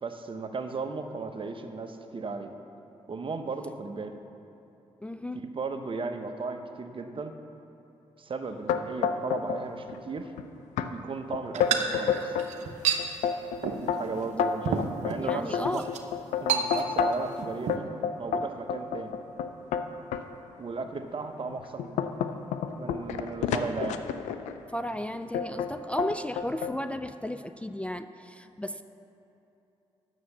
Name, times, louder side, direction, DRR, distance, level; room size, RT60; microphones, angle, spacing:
voice 1, 0.0-2.5 3.1-4.2 5.4-7.3 8.2-10.3 10.9-12.4 13.8-15.8 16.4-17.9 18.2-19.2 20.6-22.1 22.7-24.0, right 4 dB, 45° right, 7 dB, 0.9 m, -36 dB
voice 2, 5.0-5.4 15.2-15.9 24.7-28.8, left 1 dB, 10° left, 10 dB, 0.4 m, -34 dB
sound 1, 8.7-9.6 9.9-10.4 10.8-10.9 11.3-12.5 13.0-17.3 17.7-20.2 20.9-21.0 21.5-24.6 25.3-25.7 26.0-26.8, left 7 dB, 85° left, 0.4 m, -29 dB
sound 2, 11.5-13.0 13.6-13.9 14.2-14.3 14.6-15.2 15.7-16.0 16.5-17.1 17.4-17.8, right 7 dB, 80° right, 0.8 m, -29 dB
9.3 x 7.0 x 6.7 m, 2.9 s
supercardioid pair, 50°, 12 cm